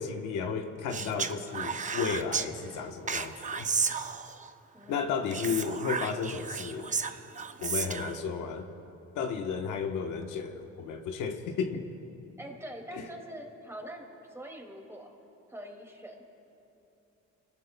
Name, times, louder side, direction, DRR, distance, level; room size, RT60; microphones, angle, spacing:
voice 1, 0.0-3.7 4.9-6.9 7.6-8.6 9.1-11.9 12.9-13.0, left 6 dB, 85° left, 4 dB, 1.2 m, -33 dB
Speech, 0.9-2.5 3.1-4.5 5.3-8.2, right 5 dB, 25° right, 0.6 m, -33 dB
voice 2, 4.7-5.7 12.4-15.1 15.5-16.2, equal, 10° right, 1 dB, 2.4 m, -44 dB
27.0 x 19.0 x 2.3 m, 2.9 s
cardioid pair, 90°, 30 cm